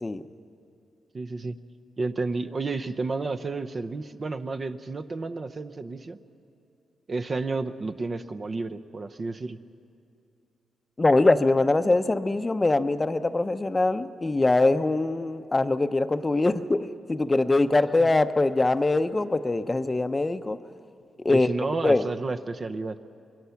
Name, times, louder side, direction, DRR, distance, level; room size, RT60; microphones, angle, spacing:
voice 1, 1.1-1.5 2.0-6.2 7.1-9.6 18.0-18.1 21.3-23.0, right 3 dB, 40° right, 7 dB, 0.8 m, -31 dB
voice 2, 11.0-20.6 21.2-21.5 21.8-22.1, left 2 dB, 25° left, 11 dB, 0.8 m, -23 dB
25.5 x 22.5 x 5.8 m, 2.5 s
cardioid pair, 90°, 0 cm